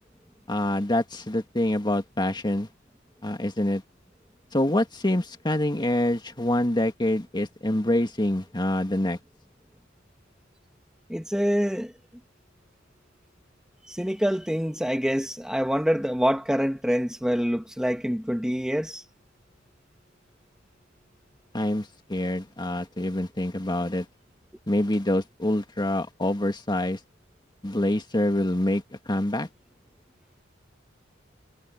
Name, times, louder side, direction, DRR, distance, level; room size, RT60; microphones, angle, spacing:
voice 1, 0.5-2.7 3.2-3.8 4.5-9.2 21.5-24.1 24.7-27.0 27.6-29.5, left 1 dB, 20° left, 2.1 m, -26 dB
voice 2, 11.1-11.9 13.8-19.0, equal, 5° right, 1.9 m, -26 dB
head